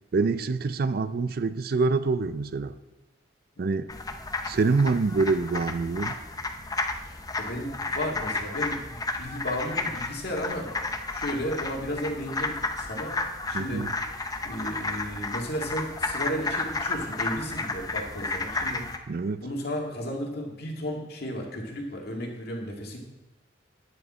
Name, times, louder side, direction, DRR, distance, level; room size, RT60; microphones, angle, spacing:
voice 1, 0.1-2.7 3.6-3.9 4.4-6.2 13.5-13.9 19.1-19.4, right 4 dB, 55° right, 0.4 m, -26 dB
voice 2, 3.6-3.9 7.0-10.7 11.1-13.1 13.5-13.9 14.4-18.8 19.4-23.0, equal, 55° left, 2.0 m, -34 dB
sound 1, 3.9-19.0, left 3 dB, 20° left, 0.6 m, -32 dB
9.7 x 9.6 x 4.3 m
head